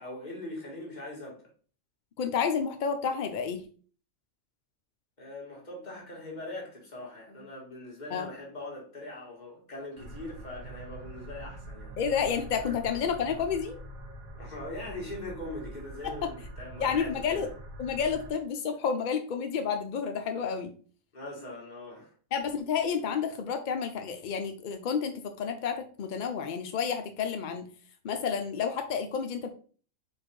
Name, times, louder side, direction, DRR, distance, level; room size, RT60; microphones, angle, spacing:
voice 1, 0.0-1.5 5.2-12.0 12.5-12.8 14.4-17.5 21.1-22.1, left 2 dB, 35° left, 1.7 m, -41 dB
voice 2, 2.2-3.7 8.1-8.3 12.0-13.8 16.0-16.3 16.8-17.5 17.8-20.7 22.3-27.7 28.0-29.5, left 6 dB, 75° left, 0.4 m, -30 dB
sound 1, 10.0-18.3, right 2 dB, 80° right, 1.3 m, -44 dB
4.5 x 2.5 x 4.5 m
omnidirectional pair, 1.4 m